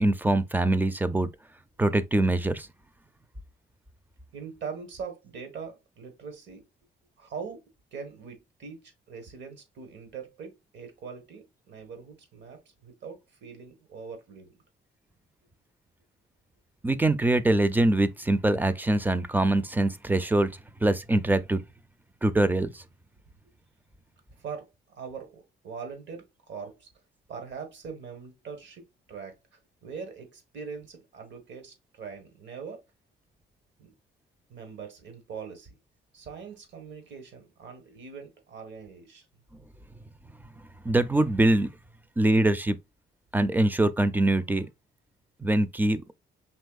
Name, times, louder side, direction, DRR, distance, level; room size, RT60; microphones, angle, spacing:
voice 1, 0.0-1.3 1.8-2.7 16.8-20.5 20.8-21.6 22.2-22.8 40.8-41.7 42.2-42.8 43.3-44.7 45.4-46.0, right 2 dB, 10° right, 0.4 m, -23 dB
voice 2, 4.3-6.6 7.2-7.6 7.9-14.6 24.4-26.9 27.3-29.3 29.8-32.8 33.8-33.9 34.5-35.7 36.1-39.3, right 6 dB, 65° right, 1.4 m, -42 dB
5.4 x 3.0 x 2.4 m
cardioid pair, 90°, 20 cm